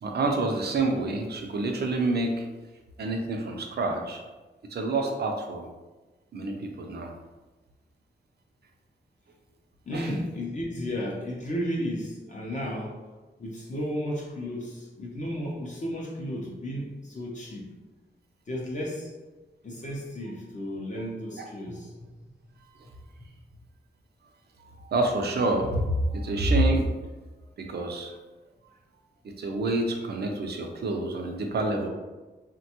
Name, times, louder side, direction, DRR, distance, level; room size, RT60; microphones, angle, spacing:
voice 1, 0.0-2.5 3.0-4.2 4.7-5.7 6.3-7.1 9.9-10.1 21.4-21.5 24.6-26.9 27.6-28.1 29.2-31.9, right 2 dB, 60° right, 2 dB, 0.5 m, -27 dB
voice 2, 9.9-13.0 13.4-17.7 18.5-19.1 19.6-22.1, equal, 40° left, -3 dB, 0.5 m, -33 dB
3.3 x 2.2 x 2.8 m, 1.2 s
wide cardioid pair, 160°, 19 cm